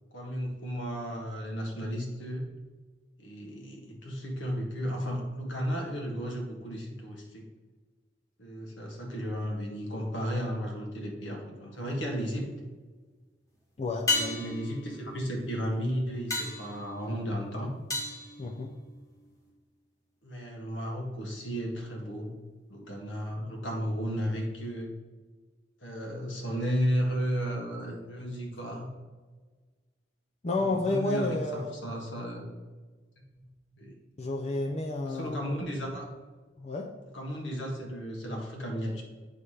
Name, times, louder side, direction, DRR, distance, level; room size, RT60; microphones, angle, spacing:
voice 1, 0.1-2.5 3.2-7.5 8.4-12.5 14.0-17.7 20.2-22.4 22.7-24.9 25.8-28.9 30.6-32.5 33.3-33.5 33.8-33.9 35.0-36.1 37.1-39.0, equal, 75° left, 1 dB, 1.5 m, -34 dB
sound 1, 11.7-12.3 14.1-19.2 23.7-23.8, left 2 dB, 15° left, 1.2 m, -35 dB
voice 2, 13.8-14.3 18.4-18.7 30.4-31.9 34.2-35.4 36.6-36.9, left 2 dB, 35° left, 2 dB, 0.5 m, -31 dB
8.1 x 3.3 x 5.6 m, 1.4 s
head